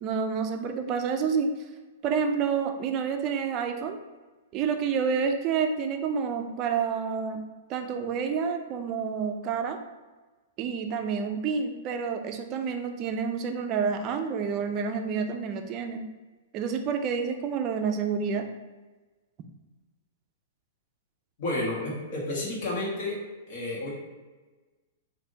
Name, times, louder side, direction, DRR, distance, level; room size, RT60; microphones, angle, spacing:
voice 1, 0.0-1.5 2.0-4.0 4.5-7.4 7.7-9.8 10.6-16.0 16.5-18.5, right 6 dB, 35° right, 6 dB, 0.4 m, -29 dB
voice 2, 21.4-23.2 23.5-23.9, left 2 dB, 50° left, -4 dB, 1.4 m, -31 dB
3.4 x 2.6 x 3.8 m, 1.3 s
hypercardioid pair, 140°, 0 cm